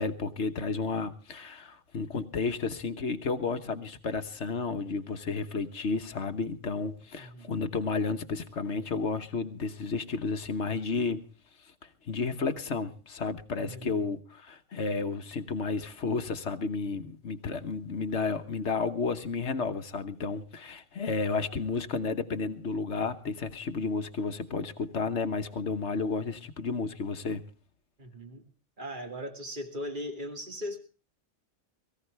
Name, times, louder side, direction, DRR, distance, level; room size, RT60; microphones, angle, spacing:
voice 1, 0.0-11.3 12.1-27.4, left 4 dB, 65° left, 1.5 m, -32 dB
voice 2, 7.2-7.6 13.6-14.1 28.0-28.5 28.8-30.8, equal, 40° right, 2.4 m, -39 dB
22.5 x 15.0 x 3.4 m
omnidirectional pair, 1.3 m